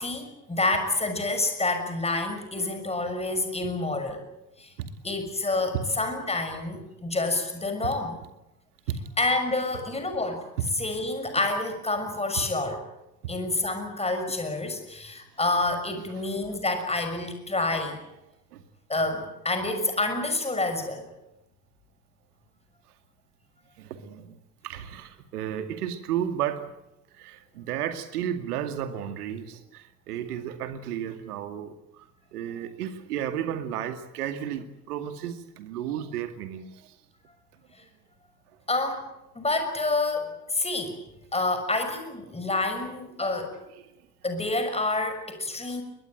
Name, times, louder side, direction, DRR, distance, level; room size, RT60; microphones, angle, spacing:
voice 1, 0.0-4.2 4.6-4.7 5.0-8.1 9.2-10.5 10.8-12.8 13.3-18.0 18.9-21.1 38.7-39.1 39.3-41.0 41.3-43.6 44.2-45.8, left 2 dB, 15° left, 7 dB, 6.3 m, -28 dB
voice 2, 23.8-24.4 24.6-26.7 27.2-36.9, right 10 dB, 65° right, 9 dB, 2.4 m, -33 dB
21.5 x 21.5 x 8.9 m, 0.92 s
figure-of-eight pair, 65°, 48 cm